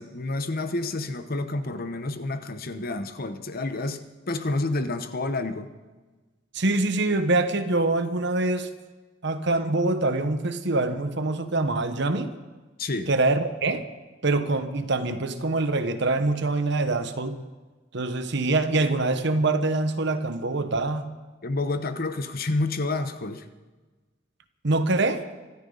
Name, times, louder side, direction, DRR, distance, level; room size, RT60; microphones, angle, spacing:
voice 1, 0.0-5.7 12.8-13.1 21.4-23.4, left 2 dB, 50° left, 9 dB, 1.0 m, -29 dB
voice 2, 6.5-8.7 9.2-12.4 13.1-13.9 14.2-17.4 17.9-21.1 24.6-25.2, right 2 dB, 65° right, 9 dB, 1.2 m, -24 dB
25.0 x 13.0 x 4.0 m, 1.2 s
head